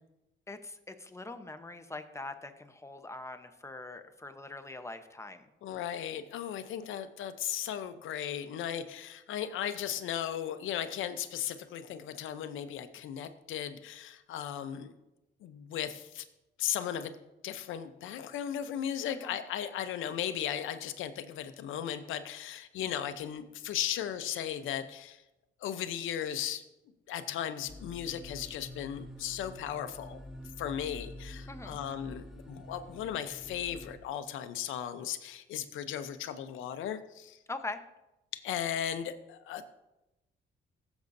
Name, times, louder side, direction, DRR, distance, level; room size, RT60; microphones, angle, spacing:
voice 1, 0.5-5.5 19.1-19.3 31.5-31.8 37.5-37.8, left 2 dB, 15° left, 8 dB, 0.9 m, -43 dB
voice 2, 5.6-14.9 15.4-16.2 16.6-17.2 17.4-25.2 25.6-26.6 27.1-30.2 30.6-37.4 38.3-39.6, left 10 dB, 80° left, 10 dB, 0.8 m, -36 dB
sound 1, 27.7-34.0, left 1 dB, 5° right, 1.8 m, -47 dB
15.5 x 7.1 x 2.7 m, 0.95 s
cardioid pair, 90°, 20 cm